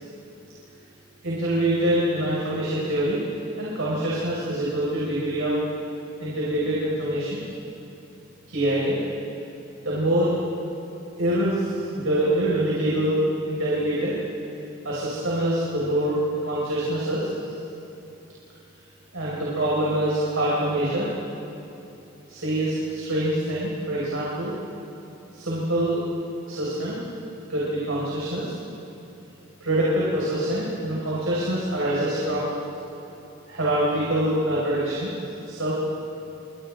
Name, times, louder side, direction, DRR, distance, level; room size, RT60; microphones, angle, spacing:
voice 1, 1.2-3.2 3.6-5.6 6.2-7.4 8.5-9.0 9.8-10.3 11.2-14.2 14.8-17.3 19.1-21.1 22.3-24.5 25.3-26.0 26.5-27.0 27.5-28.6 29.6-32.6 33.5-35.1 35.5-35.7, right 1 dB, 85° right, -7 dB, 5.6 m, -25 dB
29.0 x 27.0 x 3.8 m, 3.0 s
head